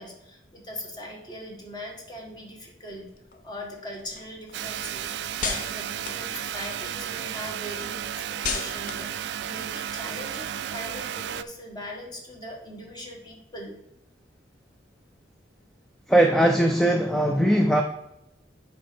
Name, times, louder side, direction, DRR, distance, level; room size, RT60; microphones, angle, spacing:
voice 1, 0.0-3.1 3.4-5.1 5.4-8.0 8.3-13.8, equal, 25° left, 0 dB, 1.4 m, -40 dB
sound 1, 2.9-7.1 7.5-10.9, left 5 dB, 45° left, 0.6 m, -38 dB
sound 2, 4.5-11.4, right 9 dB, 65° right, 0.3 m, -33 dB
voice 2, 16.1-17.8, right 1 dB, ahead, 3 dB, 0.4 m, -20 dB
7.5 x 5.1 x 4.4 m, 0.82 s
head